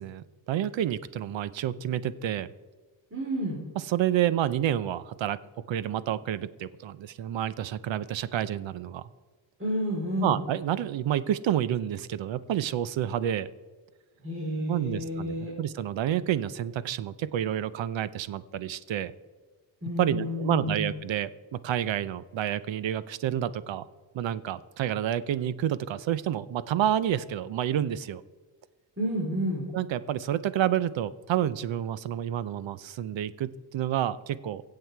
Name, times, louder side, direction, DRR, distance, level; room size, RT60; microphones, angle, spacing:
voice 1, 0.0-2.5 3.8-9.1 10.2-13.5 14.7-19.1 20.0-23.8 24.1-28.2 29.7-34.6, right 11 dB, 70° right, 16 dB, 0.7 m, -29 dB
voice 2, 3.1-3.6 9.6-10.4 14.2-15.5 19.8-20.8 29.0-29.6, equal, 25° right, -3 dB, 3.7 m, -30 dB
23.5 x 7.8 x 4.6 m, 1.3 s
cardioid pair, 95°, 47 cm